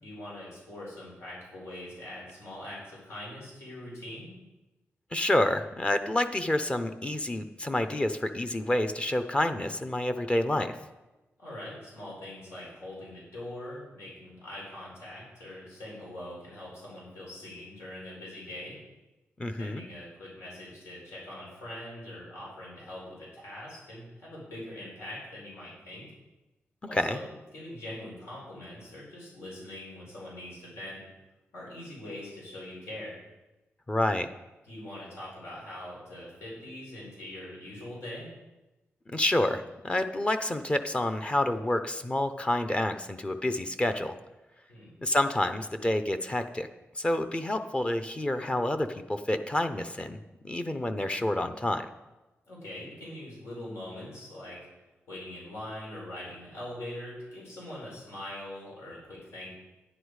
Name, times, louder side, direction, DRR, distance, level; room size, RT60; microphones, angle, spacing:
voice 1, 0.0-4.3 11.4-18.8 19.6-23.0 23.3-26.1 26.8-31.0 31.5-33.2 34.6-38.3 44.7-44.9 52.5-54.6 55.1-59.5, left 1 dB, 90° left, -5 dB, 4.8 m, -42 dB
voice 2, 5.1-10.8 19.4-19.8 26.9-27.2 33.9-34.3 39.1-44.2 45.0-46.7 46.9-51.9, left 1 dB, 25° left, 9 dB, 0.7 m, -28 dB
10.0 x 9.8 x 4.8 m, 1.1 s
wide cardioid pair, 100°, 5 cm